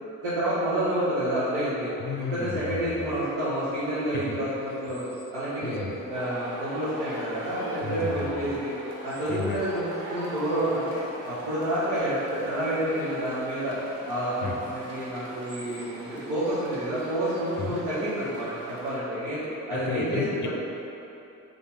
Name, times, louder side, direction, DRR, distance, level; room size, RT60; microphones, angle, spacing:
voice 1, 0.2-1.9 2.2-5.8 6.1-8.7 9.0-13.7 14.0-19.4 19.7-20.4, right 1 dB, 80° right, -12 dB, 1.1 m, -29 dB
voice 2, 2.0-3.1 4.1-4.4 5.6-6.0 7.8-8.6 9.3-9.6 14.4-14.6 17.6-17.8 19.7-20.5, left 5 dB, 30° left, 2 dB, 0.6 m, -33 dB
sound 1, 2.0-19.0, equal, 25° right, 1.3 m, -46 dB
sound 2, 6.1-19.0, right 1 dB, 65° right, 0.8 m, -42 dB
3.5 x 3.3 x 4.2 m, 2.9 s
hypercardioid pair, 45°, 37 cm